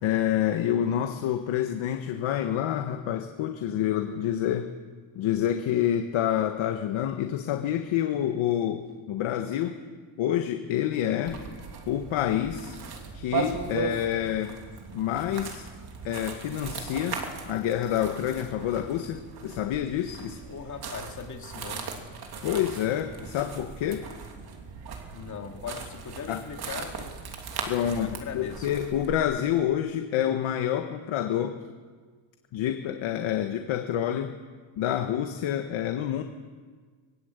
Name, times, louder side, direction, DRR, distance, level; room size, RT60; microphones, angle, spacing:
voice 1, 0.0-4.7 5.1-9.7 10.2-11.4 11.9-12.7 13.1-14.6 14.9-15.6 16.0-20.4 22.4-24.1 26.3-26.4 27.7-31.6 32.5-34.3 34.8-36.2, left 10 dB, 75° left, 5 dB, 1.6 m, -28 dB
sound 1, 11.3-29.2, right 5 dB, 50° right, 3.2 m, -38 dB
voice 2, 20.5-21.9 25.1-27.3 27.7-28.7, left 6 dB, 35° left, 3 dB, 2.5 m, -39 dB
22.0 x 21.0 x 8.2 m, 1.5 s
cardioid pair, 155°, 48 cm